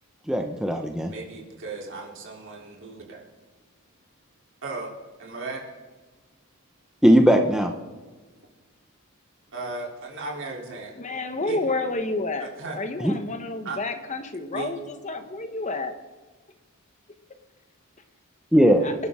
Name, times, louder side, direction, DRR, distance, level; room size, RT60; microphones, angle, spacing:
voice 1, 0.3-1.1 7.0-7.7 13.0-13.1 18.5-18.9, equal, 5° right, 3 dB, 0.8 m, -18 dB
voice 2, 1.1-3.2 4.6-4.9 5.2-5.6 9.5-10.9 11.4-11.6 12.4-12.8 13.6-13.8 14.5-14.7, right 3 dB, 60° right, -1 dB, 3.4 m, -35 dB
voice 3, 11.0-15.9 18.8-18.9, left 2 dB, 35° left, 8 dB, 1.1 m, -30 dB
27.0 x 11.5 x 3.7 m, 1.3 s
head